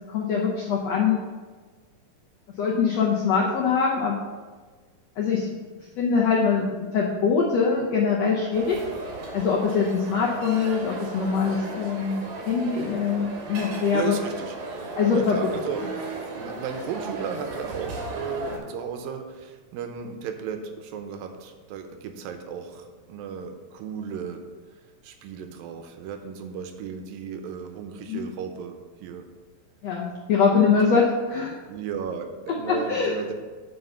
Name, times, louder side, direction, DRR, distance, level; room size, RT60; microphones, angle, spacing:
voice 1, 0.1-1.2 2.6-4.2 5.2-5.6 6.0-8.8 9.3-12.2 12.5-14.2 15.0-15.4 28.1-28.3 29.8-31.6 32.7-33.1, left 5 dB, 80° left, -2 dB, 1.5 m, -23 dB
sound 1, 8.5-18.6, right 2 dB, 55° right, 2.3 m, -36 dB
voice 2, 13.9-14.5 15.1-15.9 16.4-24.5 25.0-29.3 30.8-31.0 31.7-33.3, right 7 dB, 80° right, 6 dB, 2.5 m, -35 dB
8.0 x 5.5 x 5.6 m, 1.4 s
omnidirectional pair, 4.1 m